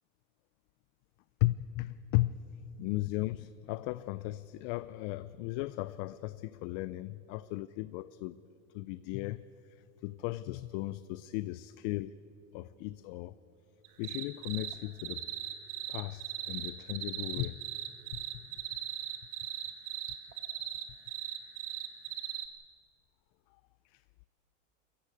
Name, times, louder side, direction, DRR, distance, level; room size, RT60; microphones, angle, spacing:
voice 1, 1.4-2.4 2.8-8.4 8.7-12.2 12.5-13.4 14.0-15.3 15.9-17.6 18.1-18.5 23.8-24.0, left 18 dB, 50° left, 0.4 m, -36 dB
sound 1, 13.8-14.7 15.0-22.5, right 12 dB, 50° right, 1.8 m, -38 dB
21.0 x 14.5 x 9.6 m
supercardioid pair, 135°, 39 cm